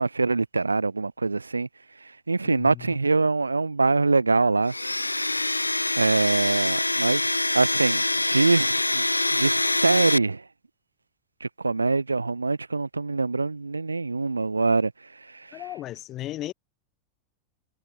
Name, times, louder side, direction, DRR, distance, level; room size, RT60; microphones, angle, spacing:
voice 1, 0.0-1.7 2.3-4.7 6.0-9.0 9.3-10.4 11.4-14.9 15.5-15.6, right 3 dB, 80° right, 0.5 m, -24 dB
voice 2, 2.4-3.0 15.5-16.5, left 14 dB, 35° left, 2.3 m, -36 dB
Domestic sounds home sounds, 4.7-10.2, left 2 dB, 85° left, 0.4 m, -25 dB
figure-of-eight pair, 90°, 0 cm